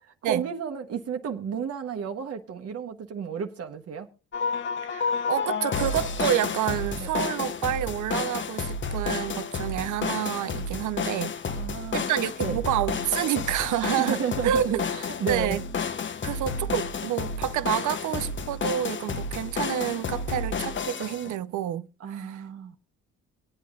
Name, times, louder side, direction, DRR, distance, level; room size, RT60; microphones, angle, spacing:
voice 1, 0.2-4.1 7.0-7.1 11.5-12.1 12.4-12.6 13.9-15.6 22.0-22.8, right 7 dB, 55° right, 1.0 m, -32 dB
sound 1, 4.3-21.4, left 5 dB, 40° left, 0.8 m, -31 dB
voice 2, 4.8-11.4 11.9-14.2 14.4-14.9 15.3-15.7 16.2-22.4, right 12 dB, 75° right, 0.7 m, -28 dB
24.0 x 8.5 x 2.4 m
cardioid pair, 90°, 30 cm